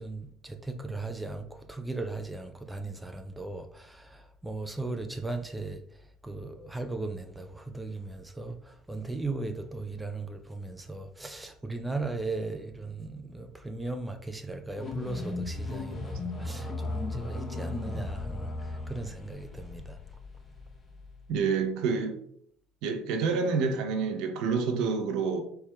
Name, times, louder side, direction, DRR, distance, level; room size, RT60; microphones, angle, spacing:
voice 1, 0.0-20.0, right 3 dB, 10° right, 0.4 m, -37 dB
sound 1, 14.7-21.4, left 2 dB, 30° left, 0.7 m, -37 dB
voice 2, 21.3-22.2 22.8-25.4, right 5 dB, 70° right, 0.6 m, -28 dB
4.5 x 3.3 x 2.3 m
supercardioid pair, 80°, 0 cm